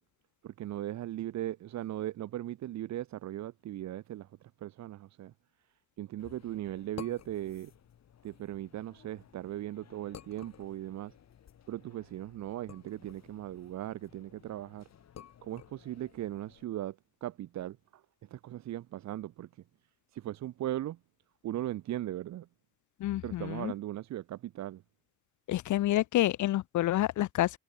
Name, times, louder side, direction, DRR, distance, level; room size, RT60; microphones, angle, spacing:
voice 1, 0.4-5.3 6.0-7.7 8.2-11.1 11.7-14.9 15.4-19.6 20.1-21.0 21.4-22.5 23.2-24.8, right 13 dB, 65° right, 0.8 m, -38 dB
sound 1, 6.2-16.6, left 9 dB, 60° left, 5.3 m, -54 dB
voice 2, 23.0-23.7 25.5-27.6, left 14 dB, 75° left, 1.1 m, -28 dB
cardioid pair, 90°, 30 cm